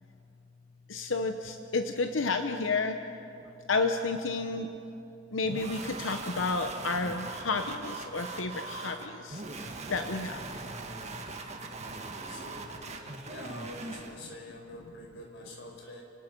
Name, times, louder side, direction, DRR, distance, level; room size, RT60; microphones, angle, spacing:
voice 1, 0.9-3.0 3.7-4.7 5.3-10.4, left 3 dB, 90° left, 6 dB, 0.9 m, -31 dB
sound 1, 5.4-14.2, right 3 dB, 35° right, 1.7 m, -41 dB
voice 2, 12.2-16.0, left 1 dB, 65° left, 0 dB, 5.0 m, -46 dB
30.0 x 19.0 x 5.4 m, 2.9 s
head